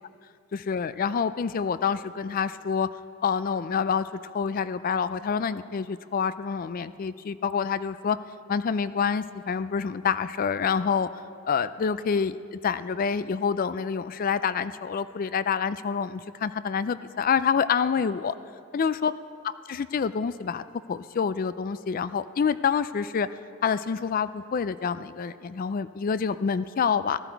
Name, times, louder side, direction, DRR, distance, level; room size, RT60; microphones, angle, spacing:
voice 1, 0.5-2.9 3.2-4.1 4.3-8.2 8.5-11.1 11.5-18.4 18.7-19.1 19.4-23.3 23.6-27.2, left 6 dB, 40° left, 14 dB, 0.3 m, -27 dB
16.0 x 12.0 x 4.6 m, 2.5 s
head